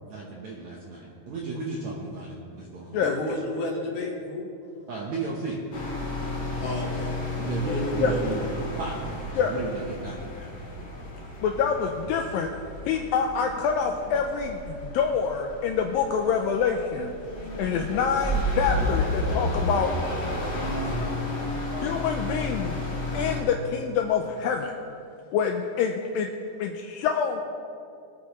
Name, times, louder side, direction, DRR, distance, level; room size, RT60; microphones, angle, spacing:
voice 1, 0.1-3.0 4.9-5.6 7.4-10.4, right 3 dB, 70° right, -3 dB, 1.7 m, -34 dB
voice 2, 3.0-4.5 6.6-8.3, left 2 dB, 65° left, 0 dB, 2.4 m, -32 dB
sound 1, 5.7-23.4, left 1 dB, 40° left, 2.1 m, -32 dB
voice 3, 11.4-12.5 12.9-17.1 17.6-19.9 21.8-22.8 23.1-24.7 25.3-26.3 26.6-27.4, left 6 dB, 80° left, 3 dB, 2.1 m, -26 dB
22.5 x 8.5 x 3.1 m, 2.5 s
omnidirectional pair, 4.6 m